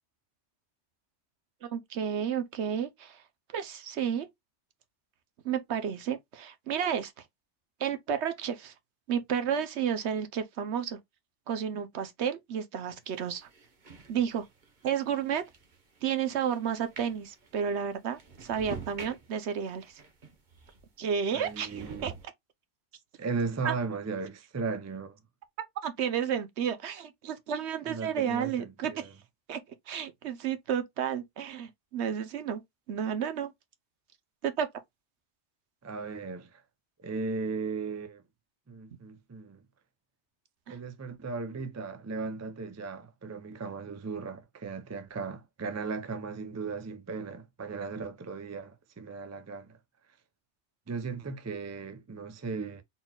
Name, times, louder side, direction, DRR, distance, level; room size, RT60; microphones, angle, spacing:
voice 1, 1.6-3.2 3.5-4.3 5.4-7.1 7.8-8.7 9.1-11.0 11.5-13.5 14.1-14.4 14.8-15.4 16.0-20.0 21.0-22.1 23.6-23.7 25.8-29.1 29.5-29.6 29.9-32.6 32.9-33.5 34.4-34.7 40.7-40.8, right 8 dB, 75° right, 1.0 m, -31 dB
sound 1, 13.0-20.9 21.4-22.3, right 4 dB, 45° right, 1.1 m, -48 dB
voice 2, 21.3-22.2 23.2-25.2 27.9-29.1 35.8-36.6 37.0-38.2 38.7-39.6 40.7-49.8 50.9-52.8, right 4 dB, 30° right, 0.3 m, -36 dB
4.1 x 3.8 x 2.3 m
omnidirectional pair, 1.2 m